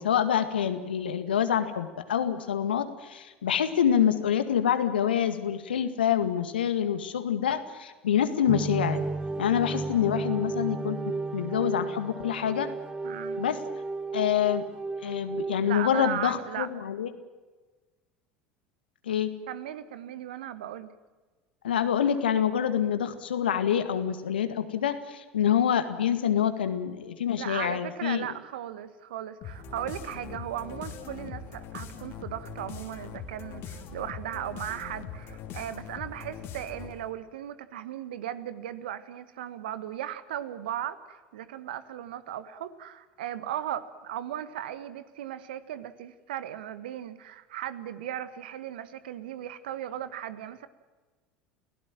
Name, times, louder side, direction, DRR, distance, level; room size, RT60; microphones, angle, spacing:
voice 1, 0.0-9.0 9.4-11.0 11.3-12.7 13.4-13.6 14.1-14.6 15.0-17.1 19.1-19.3 21.6-28.3, left 9 dB, 80° left, 10 dB, 1.9 m, -26 dB
sound 1, 8.5-15.8, right 3 dB, 15° right, 1.0 m, -34 dB
voice 2, 13.0-13.4 15.6-16.7 19.5-20.9 27.4-50.7, right 11 dB, 70° right, 14 dB, 1.5 m, -37 dB
sound 2, 29.4-37.1, left 6 dB, 50° left, 3.1 m, -41 dB
29.5 x 17.0 x 7.6 m, 1.3 s
figure-of-eight pair, 75°, 5 cm